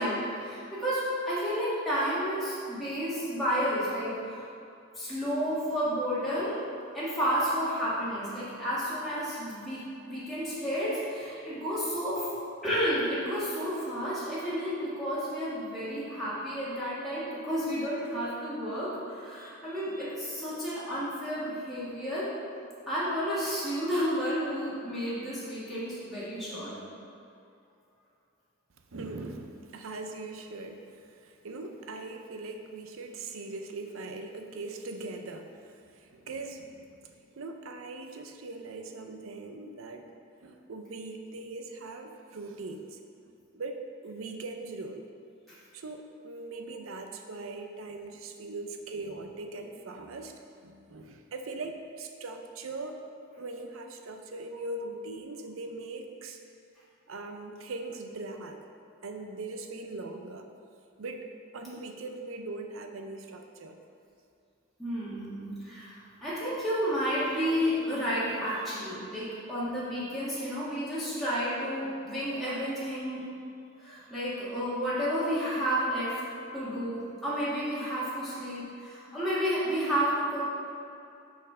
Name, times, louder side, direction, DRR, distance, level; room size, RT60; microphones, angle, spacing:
voice 1, 0.0-4.4 4.9-6.6 6.9-9.8 10.1-12.3 12.6-22.3 22.9-26.7 45.5-45.6 64.8-73.2 73.8-76.2 76.5-80.4, equal, ahead, -12 dB, 1.5 m, -31 dB
voice 2, 28.9-40.1 40.4-43.0 43.2-45.1 45.7-53.0 53.4-56.4 57.1-58.6 59.0-60.5 61.0-63.8, right 2 dB, 75° right, 5 dB, 0.6 m, -41 dB
6.0 x 4.3 x 5.4 m, 2.6 s
head